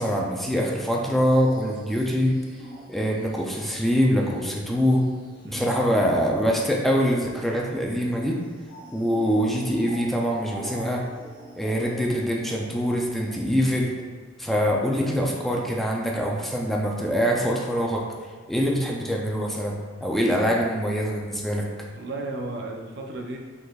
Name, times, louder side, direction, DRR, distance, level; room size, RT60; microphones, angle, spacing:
voice 1, 0.0-2.4 2.9-5.0 5.4-8.4 8.9-11.0 11.6-13.9 14.4-18.0 18.5-21.7, equal, ahead, -2 dB, 0.4 m, -24 dB
sound 1, 1.2-13.4, equal, 25° right, 0.9 m, -45 dB
voice 2, 21.9-23.4, right 2 dB, 65° right, 1 dB, 0.6 m, -34 dB
5.3 x 3.9 x 2.4 m, 1.5 s
head